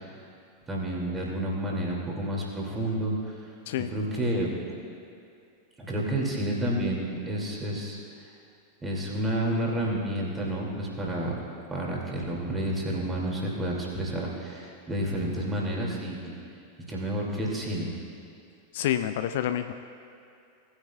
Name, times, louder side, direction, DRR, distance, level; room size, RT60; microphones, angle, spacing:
voice 1, 0.7-3.1 3.9-4.5 5.8-8.0 8.8-11.4 11.7-16.3 16.9-17.9, right 1 dB, 15° right, -3 dB, 2.6 m, -30 dB
voice 2, 18.7-19.7, left 11 dB, 55° left, 9 dB, 0.4 m, -28 dB
18.5 x 9.8 x 2.4 m, 2.6 s
figure-of-eight pair, 90°, 0 cm